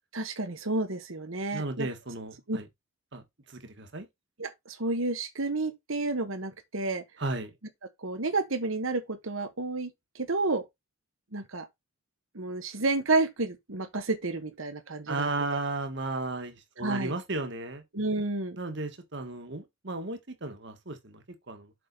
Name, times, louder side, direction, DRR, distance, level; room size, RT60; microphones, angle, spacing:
voice 1, 0.1-1.9 2.5-2.6 4.4-7.0 8.0-9.9 10.1-10.6 11.3-11.7 12.3-15.3 16.8-17.1 17.9-18.6, right 3 dB, 75° right, 1.4 m, -30 dB
voice 2, 1.5-2.7 3.1-4.1 7.2-7.6 15.1-17.8 18.6-21.7, right 2 dB, 55° right, 1.6 m, -35 dB
7.6 x 5.3 x 4.1 m
head